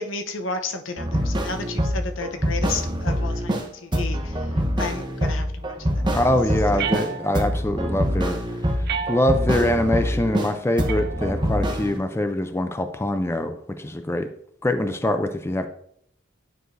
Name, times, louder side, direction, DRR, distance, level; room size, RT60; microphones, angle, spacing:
voice 1, 0.0-3.6 3.8-4.5 4.8-6.1 6.7-6.8, left 3 dB, 80° left, 6 dB, 0.7 m, -32 dB
sound 1, 1.0-3.6 3.9-7.1 7.3-10.5 10.8-12.0, equal, 25° right, 0.9 m, -25 dB
voice 2, 6.1-8.4 8.8-14.3 14.6-15.7, left 1 dB, 15° left, 8 dB, 0.4 m, -24 dB
sound 2, 6.8-7.7 8.9-9.7 10.9-11.7, right 7 dB, 55° right, 0.5 m, -32 dB
9.0 x 4.7 x 2.6 m, 0.68 s
head